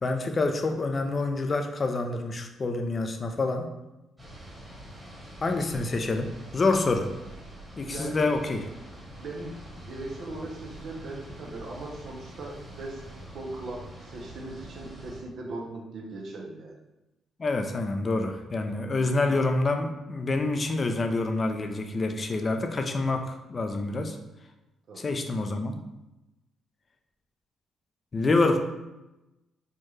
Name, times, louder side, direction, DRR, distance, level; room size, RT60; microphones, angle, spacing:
voice 1, 0.0-3.7 5.4-7.1 7.8-8.6 17.4-24.2 25.0-25.8 28.1-28.6, left 3 dB, 35° left, 5 dB, 0.4 m, -27 dB
sound 1, 4.2-15.2, right 1 dB, 10° right, 1.2 m, -45 dB
voice 2, 7.9-8.3 9.2-16.8 24.9-25.1, right 2 dB, 65° right, 0 dB, 0.7 m, -39 dB
4.5 x 2.3 x 3.1 m, 0.98 s
cardioid pair, 90°, 0 cm